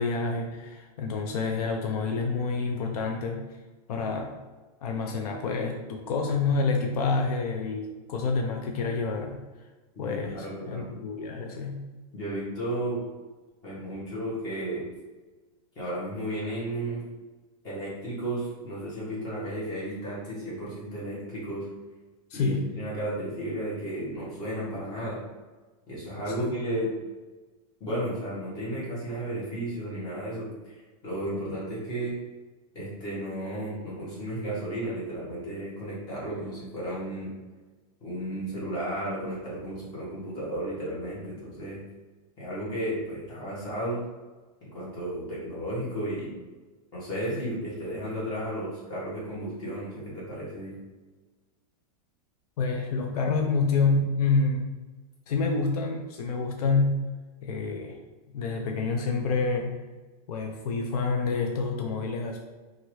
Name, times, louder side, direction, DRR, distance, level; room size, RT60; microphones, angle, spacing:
voice 1, 0.0-3.4 3.9-4.4 4.8-9.4 10.0-11.8 22.3-22.7 26.4-26.5 52.6-54.7 55.3-57.1 57.4-58.0 58.3-59.8 60.3-62.4, left 4 dB, 75° left, 2 dB, 0.5 m, -28 dB
voice 2, 9.9-10.9 12.1-13.0 13.6-14.8 15.7-17.0 17.6-21.7 22.3-25.2 25.9-26.9 27.8-32.1 32.7-37.3 38.0-41.8 42.4-44.0 44.7-46.3 46.9-50.7, right 1 dB, 20° left, -7 dB, 1.2 m, -33 dB
2.8 x 2.5 x 3.1 m, 1.2 s
supercardioid pair, 170°, 19 cm